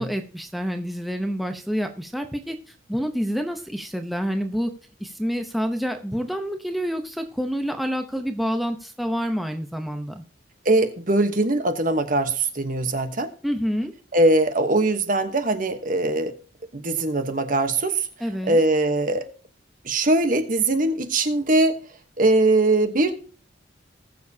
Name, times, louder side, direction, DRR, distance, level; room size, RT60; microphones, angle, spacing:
voice 1, 0.0-2.6 2.9-4.7 5.0-10.2 13.4-13.9 18.2-18.6, equal, ahead, 5 dB, 0.7 m, -27 dB
voice 2, 10.6-13.3 14.1-16.3 16.7-18.0 18.5-19.3 19.8-21.8 22.2-23.1, right 2 dB, 45° right, 8 dB, 1.1 m, -21 dB
20.0 x 6.9 x 2.8 m, 0.40 s
head